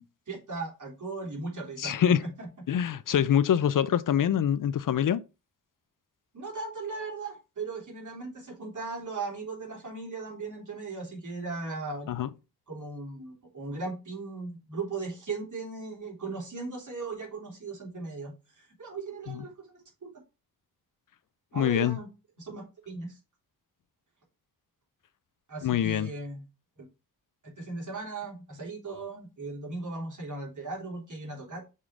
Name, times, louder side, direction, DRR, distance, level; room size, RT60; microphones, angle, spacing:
voice 1, 0.0-2.5 6.3-12.1 12.7-20.1 21.5-22.1 22.4-23.2 25.5-26.4 27.4-31.6, right 3 dB, 50° right, 3.2 m, -38 dB
voice 2, 1.8-2.2 2.7-5.2 12.1-12.3 19.3-19.4 21.5-22.0 25.6-26.1, left 9 dB, 55° left, 0.5 m, -25 dB
6.5 x 3.7 x 4.8 m
cardioid pair, 75°, 38 cm